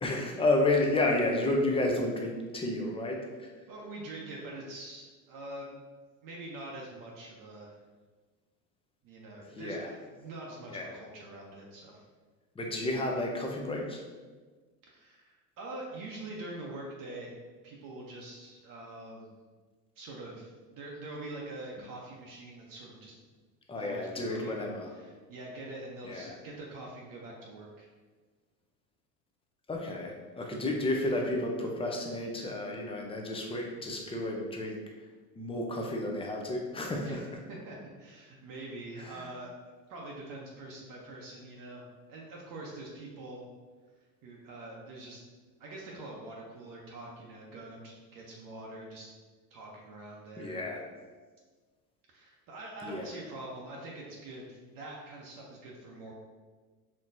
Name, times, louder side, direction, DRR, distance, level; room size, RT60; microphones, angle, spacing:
voice 1, 0.0-3.5 9.6-9.9 10.7-10.9 12.5-14.0 23.7-24.9 26.1-26.3 29.7-34.8 35.3-37.4 39.0-39.3 50.4-50.8 52.8-53.1, left 2 dB, 10° left, 1 dB, 0.5 m, -31 dB
voice 2, 3.7-5.8 6.2-7.8 9.0-12.0 14.9-17.3 17.6-19.3 20.0-23.1 23.7-27.9 37.0-39.5 39.9-43.4 44.2-45.2 45.6-49.1 49.5-50.7 52.1-56.1, right 2 dB, 45° right, -2 dB, 0.8 m, -44 dB
4.4 x 3.0 x 2.6 m, 1.4 s
hypercardioid pair, 85°, 48 cm